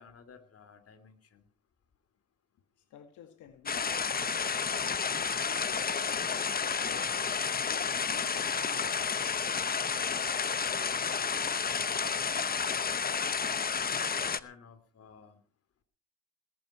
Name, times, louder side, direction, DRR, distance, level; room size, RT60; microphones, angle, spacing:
voice 1, 0.0-1.4 12.0-12.7 13.8-15.4, left 6 dB, 50° left, 10 dB, 3.0 m, -54 dB
voice 2, 2.8-5.0 5.4-7.1 7.6-9.4, left 9 dB, 85° left, 7 dB, 2.1 m, -52 dB
sound 1, 3.7-14.4, left 6 dB, 30° left, 0.9 m, -31 dB
19.5 x 11.0 x 4.4 m, 0.37 s
cardioid pair, 90°, 30 cm